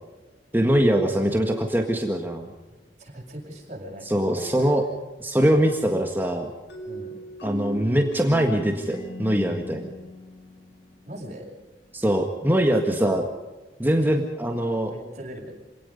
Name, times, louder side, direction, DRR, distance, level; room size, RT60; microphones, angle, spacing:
voice 1, 0.5-2.5 4.1-4.8 5.2-6.5 7.4-9.9 11.9-13.3 13.8-14.9, equal, 10° right, 3 dB, 1.7 m, -22 dB
voice 2, 3.0-4.7 6.9-7.1 11.0-11.5 12.7-13.0 14.9-15.5, equal, 40° right, -1 dB, 7.8 m, -40 dB
sound 1, 6.7-11.4, right 1 dB, 80° left, 5.0 m, -38 dB
27.0 x 18.5 x 5.5 m, 1.2 s
head